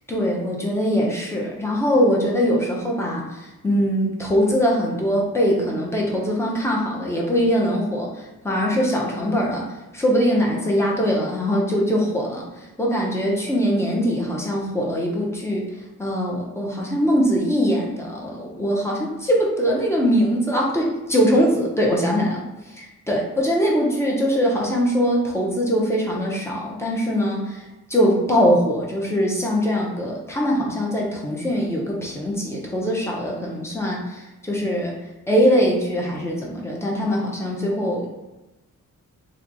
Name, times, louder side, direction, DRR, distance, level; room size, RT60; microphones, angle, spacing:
voice 1, 0.1-9.7 9.9-15.6 16.0-22.5 22.8-27.6 27.9-34.9 35.3-38.1, equal, 10° left, -3 dB, 0.7 m, -22 dB
3.1 x 2.2 x 3.8 m, 1.0 s
wide cardioid pair, 130°, 32 cm